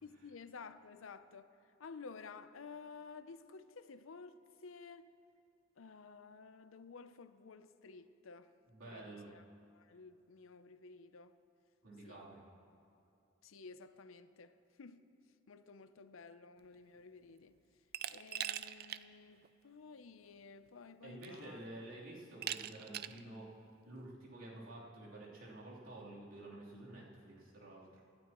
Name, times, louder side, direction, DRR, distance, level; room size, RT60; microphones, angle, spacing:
voice 1, 0.0-1.5 1.8-5.1 5.8-8.5 8.8-9.4 9.7-11.4 12.0-12.2 13.4-15.0 15.5-17.6 18.1-21.6, left 4 dB, 85° left, 0.6 m, -53 dB
voice 2, 8.7-9.3 11.8-12.4 21.0-23.5 23.8-28.0, right 2 dB, 90° right, 3.3 m, -50 dB
Glass, 17.9-19.0 19.4-19.5 20.7-20.8 21.2-21.6 22.4-23.2, right 12 dB, 50° right, 0.3 m, -41 dB
26.0 x 12.0 x 3.0 m
head